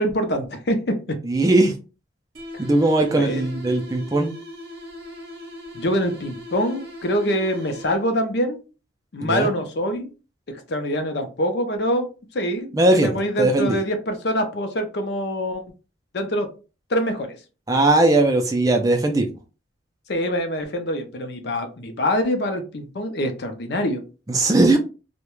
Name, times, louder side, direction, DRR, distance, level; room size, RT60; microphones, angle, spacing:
voice 1, 0.0-1.2 3.1-3.4 5.7-8.6 9.1-10.1 10.5-15.6 16.1-16.5 16.9-17.4 20.1-24.0, equal, 60° left, 6 dB, 0.5 m, -25 dB
voice 2, 1.2-1.7 2.6-4.3 9.2-9.5 12.7-13.8 17.7-19.3 24.3-24.8, right 2 dB, 20° right, 3 dB, 0.3 m, -19 dB
sound 1, 2.3-8.3, left 1 dB, 50° right, 0.7 m, -39 dB
2.3 x 2.1 x 3.0 m, 0.32 s
head